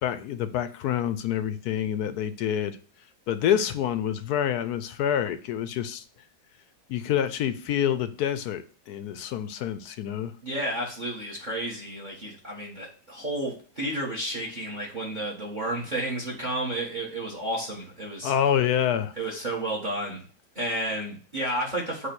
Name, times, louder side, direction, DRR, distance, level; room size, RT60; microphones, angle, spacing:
voice 1, 0.0-2.8 3.3-6.0 6.9-10.3 18.2-19.1, left 9 dB, 70° left, 11 dB, 1.0 m, -27 dB
voice 2, 10.4-18.3 19.2-20.2 20.5-22.1, right 1 dB, 25° right, -2 dB, 1.6 m, -31 dB
8.1 x 2.7 x 6.0 m, 0.41 s
omnidirectional pair, 1.9 m